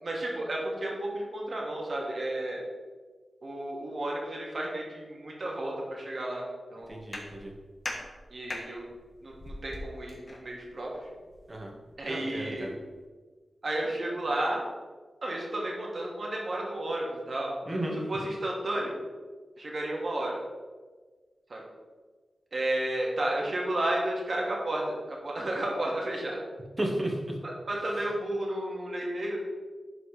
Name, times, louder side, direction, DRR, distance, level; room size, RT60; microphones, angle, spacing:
voice 1, 0.0-2.6 3.4-7.0 8.3-8.9 9.2-11.1 12.0-12.7 13.6-14.7 15.2-19.0 19.6-20.4 21.5-21.6 22.5-26.4 27.4-29.4, right 1 dB, 50° right, -2 dB, 2.1 m, -32 dB
sound 1, 6.8-13.0, left 1 dB, 35° left, 1.4 m, -44 dB
voice 2, 6.9-7.5 11.5-11.7 12.0-12.7 17.7-18.0 26.8-27.3, right 1 dB, 30° right, -1 dB, 1.8 m, -33 dB
11.5 x 5.0 x 3.4 m, 1.4 s
wide cardioid pair, 80°, 0 cm